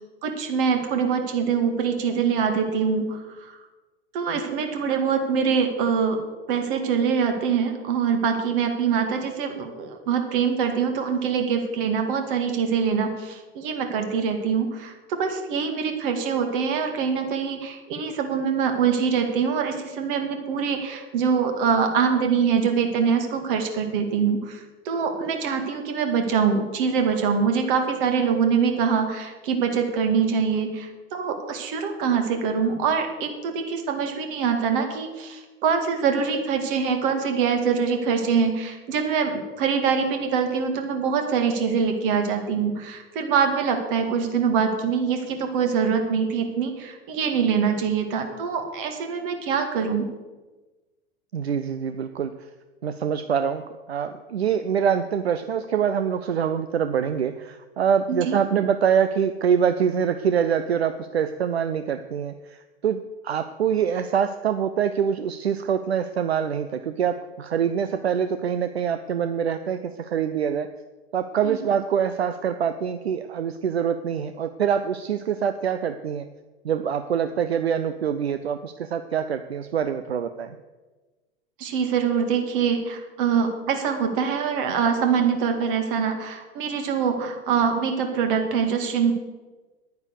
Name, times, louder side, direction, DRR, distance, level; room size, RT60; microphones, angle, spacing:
voice 1, 0.2-3.5 4.1-6.2 6.5-50.1 58.1-58.4 71.4-71.6 81.6-89.1, right 6 dB, 55° right, 5 dB, 2.1 m, -24 dB
voice 2, 51.3-52.3 52.8-53.6 53.9-63.0 63.2-70.7 71.1-76.3 76.6-80.6, right 8 dB, 80° right, 10 dB, 0.6 m, -25 dB
10.5 x 9.6 x 6.5 m, 1.2 s
figure-of-eight pair, 85°, 31 cm